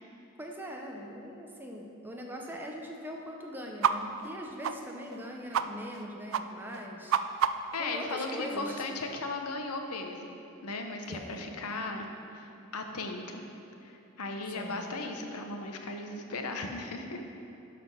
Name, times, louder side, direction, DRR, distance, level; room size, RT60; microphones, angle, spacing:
voice 1, 0.4-7.1 7.8-8.8 11.1-11.5 14.6-14.9, equal, 10° right, 0 dB, 0.7 m, -41 dB
sound 1, 3.8-3.9 4.2-4.3 4.6-4.7 5.1-5.2 5.5-5.7 5.9-6.0 6.3-6.4 6.7-7.8, right 8 dB, 60° right, 0.3 m, -28 dB
voice 2, 7.7-13.4 13.8-17.2, left 3 dB, 85° left, 4 dB, 0.9 m, -37 dB
11.5 x 4.3 x 5.7 m, 3.0 s
head